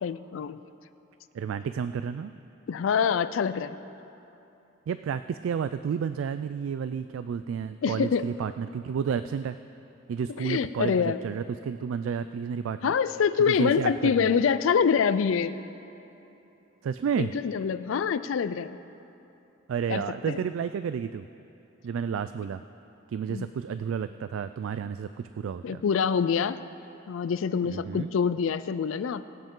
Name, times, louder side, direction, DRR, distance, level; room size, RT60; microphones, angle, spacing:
voice 1, 0.0-0.6 2.7-3.8 7.8-8.3 10.4-11.2 12.8-15.6 17.2-18.8 19.9-20.4 23.3-23.5 25.6-26.6 27.1-29.3, left 6 dB, 85° left, 13 dB, 0.4 m, -25 dB
voice 2, 1.3-2.3 4.9-9.6 10.1-12.9 13.5-14.4 16.8-17.3 19.7-21.3 21.8-22.6 23.1-25.8 27.6-28.1, right 7 dB, 85° right, 12 dB, 0.3 m, -31 dB
21.5 x 7.9 x 3.7 m, 2.9 s
head